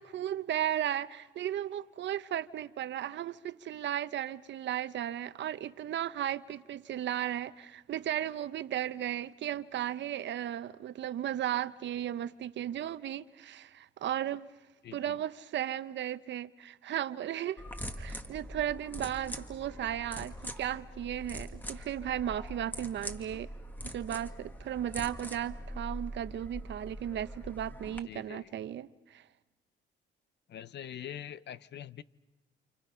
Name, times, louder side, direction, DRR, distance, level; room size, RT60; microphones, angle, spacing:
voice 1, 0.0-14.5 14.9-17.6 18.0-23.5 23.8-29.2, right 11 dB, 65° right, 0.8 m, -35 dB
voice 2, 14.8-15.2 28.1-28.5 30.5-32.0, left 10 dB, 60° left, 0.8 m, -44 dB
sound 1, 17.6-28.0, equal, 10° left, 1.8 m, -43 dB
29.5 x 28.0 x 5.7 m
cardioid pair, 90°, 20 cm